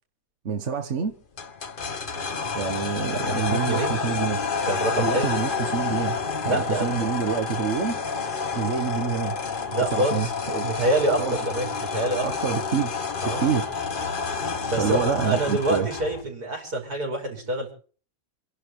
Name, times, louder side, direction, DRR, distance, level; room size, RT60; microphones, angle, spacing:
voice 1, 0.4-1.1 2.5-4.4 5.0-6.2 6.4-8.0 8.5-9.4 9.9-10.6 11.2-11.4 12.2-12.9 13.2-13.7 14.7-15.9, right 6 dB, 50° right, 1.4 m, -27 dB
sound 1, 1.4-16.2, left 5 dB, 35° left, 1.3 m, -29 dB
voice 2, 3.1-4.0 4.6-5.3 6.4-6.9 9.7-12.3 13.2-13.4 14.7-17.7, right 1 dB, 75° right, 5.8 m, -27 dB
28.5 x 11.5 x 3.2 m
omnidirectional pair, 1.6 m